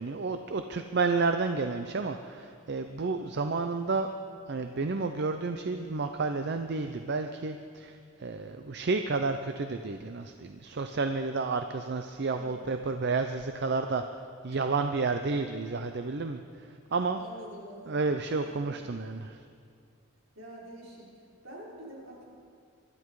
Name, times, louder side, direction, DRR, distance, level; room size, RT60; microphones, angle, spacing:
voice 1, 0.0-4.1 4.5-14.0 14.4-17.2 17.9-19.4, right 4 dB, 55° right, 7 dB, 0.6 m, -31 dB
voice 2, 12.3-12.7 14.5-14.6 17.0-18.0 18.4-18.7 20.3-22.2, equal, 75° right, -5 dB, 4.9 m, -47 dB
24.0 x 12.5 x 4.8 m, 2.2 s
head